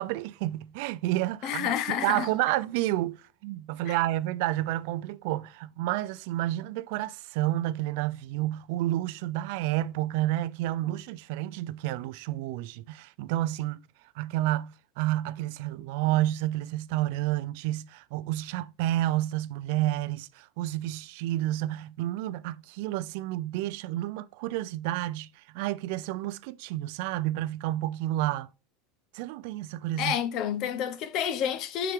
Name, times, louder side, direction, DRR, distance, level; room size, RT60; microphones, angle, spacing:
voice 1, 0.0-13.9 14.2-28.5 29.1-30.1, right 15 dB, 65° right, 0.4 m, -30 dB
voice 2, 1.4-2.3 3.9-4.0 30.0-31.9, left 9 dB, 45° left, 0.8 m, -29 dB
6.0 x 5.8 x 3.6 m
supercardioid pair, 150°, 0 cm